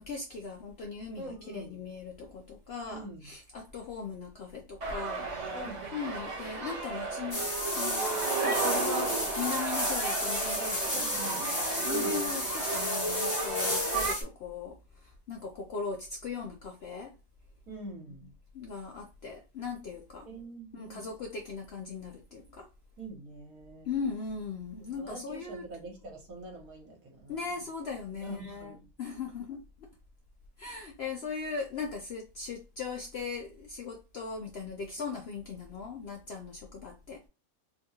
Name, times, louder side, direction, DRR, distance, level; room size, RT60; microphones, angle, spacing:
voice 1, 0.0-5.3 5.9-7.4 7.8-8.1 8.4-17.1 18.2-18.3 18.5-20.3 20.7-22.7 23.8-25.7 27.3-29.9 30.6-37.3, left 5 dB, 65° left, 0.6 m, -39 dB
voice 2, 1.2-1.9 2.9-3.2 5.5-5.9 10.9-11.5 11.9-12.3 17.7-18.3 20.2-21.0 23.0-23.9 24.8-27.4 28.2-28.9, right 2 dB, 70° right, 1.6 m, -45 dB
sound 1, 4.8-14.1, right 4 dB, 50° right, 0.5 m, -34 dB
sound 2, 7.3-14.2, left 1 dB, 15° left, 1.0 m, -32 dB
3.4 x 2.3 x 2.7 m
omnidirectional pair, 1.6 m